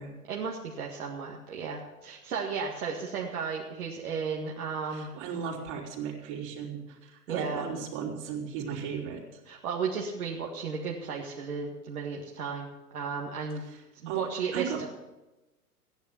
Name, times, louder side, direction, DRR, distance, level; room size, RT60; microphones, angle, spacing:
voice 1, 0.3-5.1 7.3-7.7 9.5-12.7 12.9-13.6 14.0-14.9, right 5 dB, 65° right, -2 dB, 2.0 m, -34 dB
voice 2, 4.9-9.2 14.1-14.2 14.5-14.9, right 7 dB, 45° right, -1 dB, 3.8 m, -36 dB
14.5 x 10.5 x 5.9 m, 1.0 s
figure-of-eight pair, 110°, 47 cm